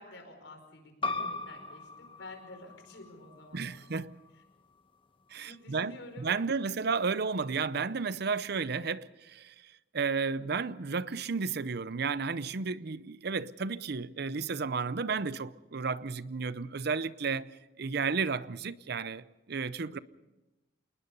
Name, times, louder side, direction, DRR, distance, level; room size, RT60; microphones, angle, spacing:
voice 1, 0.0-3.9 5.4-6.7 19.9-20.0, left 2 dB, 90° left, 5.2 m, -50 dB
sound 1, 1.0-6.2, left 3 dB, 30° left, 1.4 m, -41 dB
voice 2, 3.5-4.2 5.3-9.5 9.9-17.5 17.8-20.0, right 5 dB, 60° right, 0.7 m, -33 dB
27.5 x 20.0 x 5.5 m
head